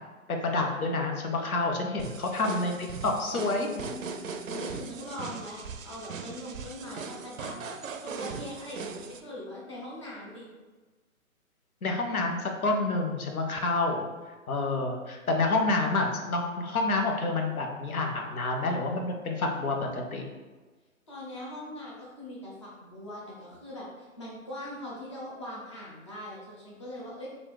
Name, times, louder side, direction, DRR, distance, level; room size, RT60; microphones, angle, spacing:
voice 1, 0.4-3.7 11.8-14.1 14.5-20.2, left 3 dB, 80° left, 2 dB, 1.1 m, -28 dB
sound 1, 2.0-9.2, right 5 dB, 65° right, 0.6 m, -39 dB
voice 2, 3.3-4.1 4.5-7.7 8.0-10.5 21.1-27.3, left 1 dB, 20° left, -6 dB, 0.5 m, -41 dB
4.2 x 2.4 x 4.8 m, 1.3 s
hypercardioid pair, 160°, 43 cm